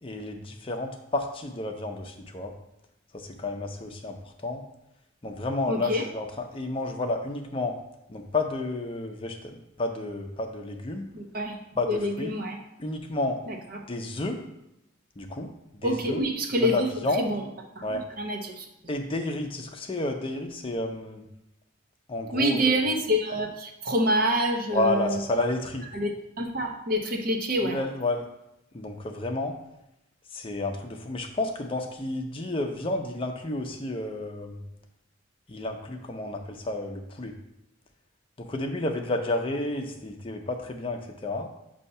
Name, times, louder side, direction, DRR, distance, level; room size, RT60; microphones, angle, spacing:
voice 1, 0.0-2.5 3.1-4.6 5.2-6.3 6.5-7.8 8.1-11.1 11.8-12.3 12.8-13.4 13.9-14.4 15.2-16.2 16.6-17.3 17.8-18.0 18.9-21.3 22.1-22.8 24.7-25.9 27.6-28.3 28.7-29.6 30.3-34.6 35.5-37.4 38.4-41.5, left 2 dB, 25° left, 3 dB, 0.6 m, -31 dB
voice 2, 5.7-6.0 11.1-11.6 11.9-12.6 13.5-13.8 15.8-16.9 17.2-17.4 17.8-18.7 22.3-25.2 25.9-27.8, equal, 50° right, 3 dB, 0.7 m, -27 dB
6.6 x 2.8 x 5.4 m, 0.86 s
head